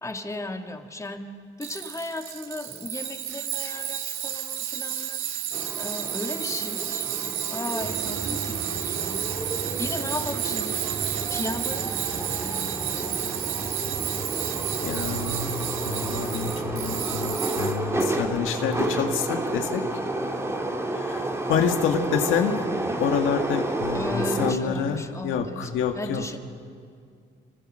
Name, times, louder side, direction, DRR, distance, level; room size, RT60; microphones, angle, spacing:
voice 1, 0.0-1.3 1.6-5.2 5.8-7.1 7.5-9.3 9.6-13.4 23.9-26.4, left 2 dB, 15° left, 4 dB, 1.9 m, -36 dB
Tools, 1.6-18.1, right 10 dB, 90° right, 1.4 m, -31 dB
sound 1, 5.5-24.5, right 2 dB, 15° right, 2.4 m, -31 dB
sound 2, 7.8-17.0, right 4 dB, 50° right, 2.4 m, -38 dB
voice 2, 14.8-19.8 20.9-26.4, left 7 dB, 90° left, 4 dB, 1.9 m, -28 dB
28.0 x 26.0 x 6.4 m, 2.2 s
cardioid pair, 90°, 20 cm